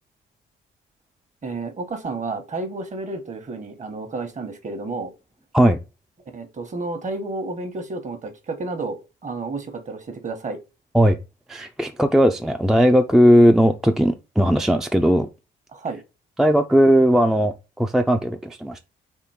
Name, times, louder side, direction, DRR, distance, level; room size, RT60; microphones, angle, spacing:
voice 1, 1.4-5.1 6.3-10.6 15.7-16.0, right 3 dB, 40° right, 1.1 m, -31 dB
voice 2, 11.5-15.3 16.4-18.8, equal, ahead, 0.4 m, -17 dB
3.7 x 3.0 x 4.3 m
cardioid pair, 90°, 20 cm